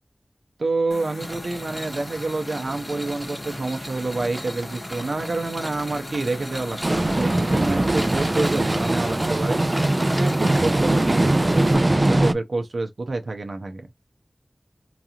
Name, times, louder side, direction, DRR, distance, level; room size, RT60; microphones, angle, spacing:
voice 1, 0.6-9.6 10.2-11.7 12.0-13.9, right 3 dB, 85° right, 0.6 m, -28 dB
sound 1, 0.9-11.8, left 2 dB, 75° left, 0.7 m, -41 dB
sound 2, 1.2-10.7, equal, 10° right, 0.9 m, -35 dB
sound 3, 6.8-12.3, right 2 dB, 40° right, 0.3 m, -21 dB
3.9 x 2.4 x 2.8 m
wide cardioid pair, 55°, 0 cm